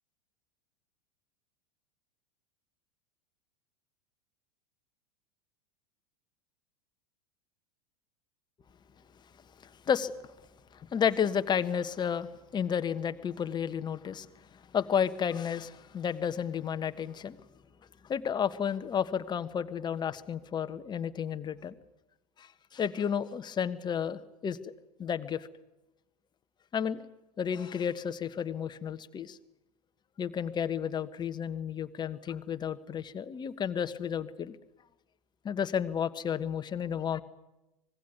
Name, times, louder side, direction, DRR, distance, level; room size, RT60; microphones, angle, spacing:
voice 1, 10.7-14.3 14.7-17.4 18.1-21.7 22.4-24.7 25.0-25.5 26.7-27.0 27.4-29.4 30.2-34.6 35.4-37.2, left 8 dB, 25° left, 11 dB, 1.3 m, -32 dB
25.5 x 20.0 x 9.5 m, 0.98 s
figure-of-eight pair, 85°, 19 cm